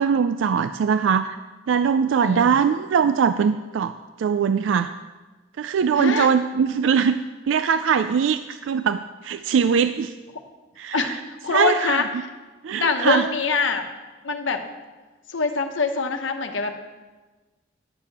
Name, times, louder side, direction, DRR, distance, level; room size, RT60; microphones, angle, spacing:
voice 1, 0.0-1.4 1.7-4.9 5.6-7.2 7.5-10.1 10.8-11.2 11.5-12.0 12.6-13.2, right 6 dB, 80° right, 11 dB, 0.3 m, -21 dB
voice 2, 2.2-2.6 6.0-6.3 10.9-12.3 12.8-13.8 14.2-14.6 15.3-16.8, left 4 dB, 75° left, 5 dB, 1.0 m, -24 dB
11.0 x 6.6 x 7.2 m, 1.3 s
head